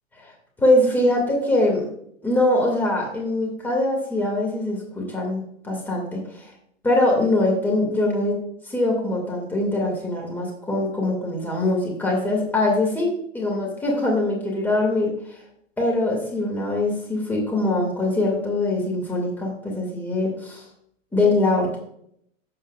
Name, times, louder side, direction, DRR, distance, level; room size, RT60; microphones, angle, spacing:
voice 1, 0.6-1.9 2.2-6.5 6.8-8.4 8.6-15.4 15.8-20.6 21.1-21.8, left 2 dB, 5° left, -2 dB, 2.5 m, -23 dB
12.0 x 8.5 x 2.5 m, 0.70 s
figure-of-eight pair, 115°, 38 cm